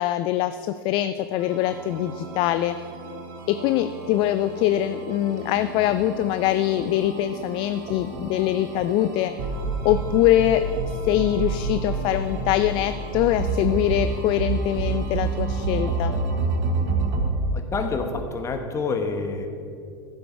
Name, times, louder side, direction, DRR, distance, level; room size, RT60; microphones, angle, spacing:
voice 1, 0.0-2.8 3.5-9.3 9.8-16.1, left 12 dB, 45° left, 11 dB, 0.4 m, -23 dB
sound 1, 1.4-17.4, right 3 dB, 55° right, 1.6 m, -29 dB
voice 2, 17.5-19.5, left 4 dB, 25° left, 5 dB, 1.3 m, -28 dB
15.0 x 7.8 x 4.7 m, 2.4 s
figure-of-eight pair, 85°, 12 cm